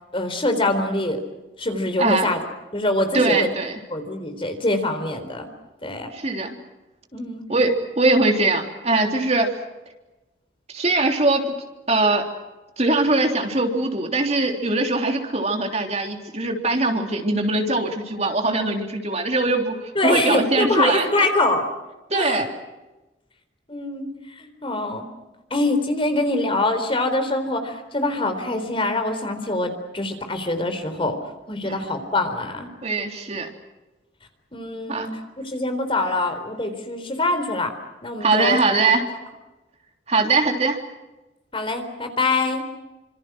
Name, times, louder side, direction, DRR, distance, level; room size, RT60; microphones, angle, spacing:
voice 1, 0.1-1.2 1.6-2.5 2.7-3.5 3.9-5.5 5.8-6.1 7.1-7.4 20.0-21.7 22.1-22.4 23.7-25.1 25.5-31.2 31.5-32.7 34.5-37.8 38.0-38.6 41.5-42.6, left 2 dB, 30° left, 7 dB, 3.7 m, -24 dB
voice 2, 2.0-2.3 3.1-3.8 6.1-6.6 7.5-9.5 10.7-11.5 11.9-12.3 12.8-19.7 20.0-21.1 22.1-22.5 31.6-31.8 32.8-33.5 34.9-35.1 38.2-39.0 40.1-40.8, right 2 dB, 35° right, 3 dB, 3.3 m, -21 dB
28.0 x 26.5 x 6.2 m, 1.1 s
head